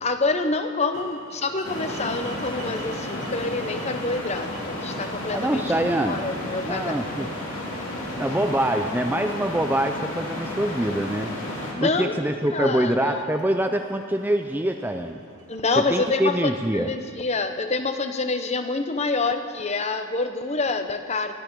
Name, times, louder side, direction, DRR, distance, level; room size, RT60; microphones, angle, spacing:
voice 1, 0.0-5.6 6.0-7.3 11.7-12.2 12.5-13.2 15.5-21.3, left 3 dB, 30° left, 8 dB, 0.8 m, -27 dB
sound 1, 0.9-17.0, right 2 dB, 75° right, 2.2 m, -46 dB
sound 2, 1.6-11.7, left 1 dB, 60° left, 2.9 m, -32 dB
voice 2, 5.3-6.3 6.6-7.3 8.2-11.3 11.8-15.2 15.8-16.9, right 1 dB, 10° right, 5 dB, 0.4 m, -24 dB
19.5 x 13.0 x 4.7 m, 2.1 s
head